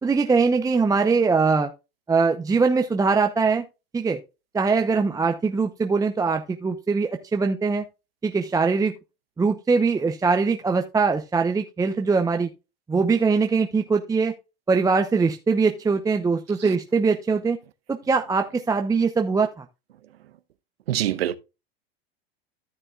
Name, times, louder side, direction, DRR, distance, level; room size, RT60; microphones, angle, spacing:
voice 1, 0.0-1.7 2.1-3.6 3.9-4.2 4.5-7.8 8.2-8.9 9.4-12.5 12.9-14.3 14.7-17.6 17.9-19.6, right 4 dB, 10° right, 0.8 m, -22 dB
voice 2, 20.9-21.4, right 12 dB, 90° right, 0.9 m, -25 dB
13.5 x 6.6 x 2.4 m
hypercardioid pair, 110°, 29 cm